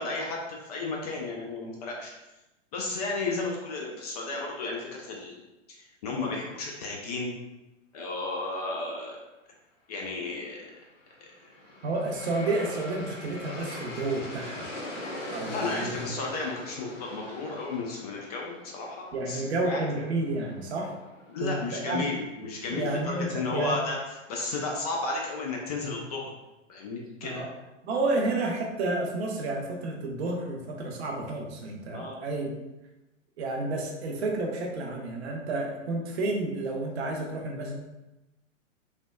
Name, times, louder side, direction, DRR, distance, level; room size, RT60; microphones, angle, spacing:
voice 1, 0.0-2.1 2.7-5.4 5.7-7.3 7.9-9.2 9.9-10.6 15.5-19.9 21.3-24.0 24.3-26.3 26.7-27.4 31.9-32.2, left 3 dB, 35° left, -1 dB, 0.4 m, -33 dB
Aircraft, 11.1-22.2, left 1 dB, 85° left, 0.9 m, -42 dB
voice 2, 11.8-14.7 15.3-16.3 19.1-21.0 21.4-22.0 22.7-23.8 27.2-27.5 27.8-32.5 33.4-37.8, right 2 dB, 55° right, 0 dB, 0.7 m, -31 dB
3.2 x 2.1 x 2.2 m, 0.99 s
figure-of-eight pair, 110°, 38 cm